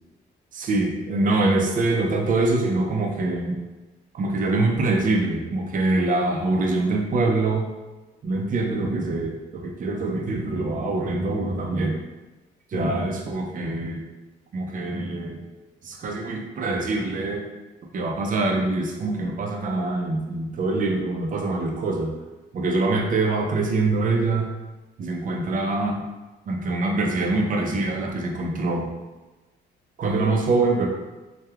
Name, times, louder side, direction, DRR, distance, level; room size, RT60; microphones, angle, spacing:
voice 1, 0.5-3.6 4.1-7.7 8.2-12.1 12.7-14.0 14.5-15.4 15.8-17.5 17.9-22.1 22.5-24.5 25.0-26.0 26.5-28.9 30.0-30.9, right 2 dB, 40° right, 1 dB, 0.5 m, -24 dB
3.0 x 2.2 x 2.3 m, 1.1 s
cardioid pair, 90°, 20 cm